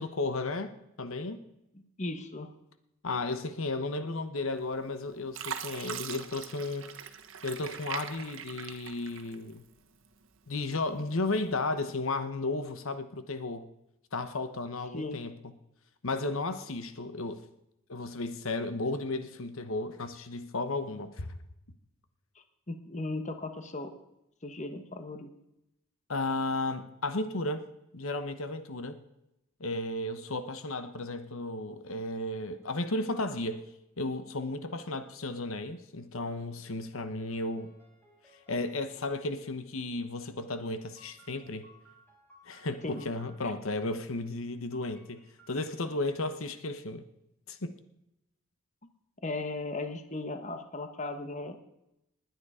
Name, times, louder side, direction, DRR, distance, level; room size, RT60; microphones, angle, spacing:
voice 1, 0.0-1.4 3.0-6.9 7.4-9.6 10.5-13.7 14.1-15.3 16.0-17.4 17.9-21.4 26.1-27.6 27.9-29.0 29.6-33.6 34.0-37.7 38.5-41.7 42.5-45.2 45.5-47.0 47.5-47.8, left 2 dB, 75° left, 10 dB, 1.1 m, -34 dB
voice 2, 2.0-2.5 14.9-15.2 22.7-23.9 24.4-25.3 42.8-43.1 49.2-51.6, left 2 dB, 35° left, 8 dB, 1.2 m, -36 dB
Fill (with liquid), 4.6-5.0 5.3-9.7 10.2-11.0 11.5-11.7, right 7 dB, 65° right, 1.2 m, -41 dB
sound 1, 37.2-39.4 40.7-43.4 44.7-46.3, equal, 10° left, 4.7 m, -61 dB
20.5 x 9.6 x 5.0 m, 0.86 s
head